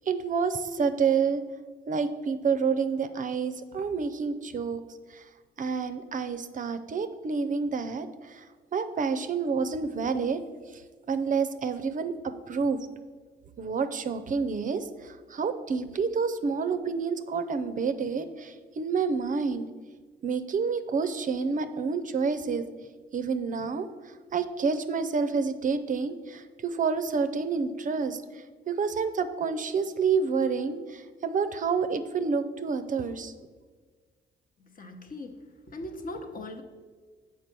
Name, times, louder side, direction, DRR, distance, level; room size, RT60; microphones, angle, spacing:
voice 1, 0.1-1.4 1.9-4.8 5.1-5.3 5.6-8.5 8.7-10.4 10.7-10.8 11.1-12.9 13.6-19.7 20.2-22.7 23.1-33.3, right 5 dB, 40° right, 10 dB, 0.5 m, -29 dB
voice 2, 34.8-35.4 35.7-36.6, left 1 dB, 45° left, 5 dB, 0.9 m, -39 dB
6.7 x 4.7 x 6.0 m, 1.5 s
cardioid pair, 90°, 20 cm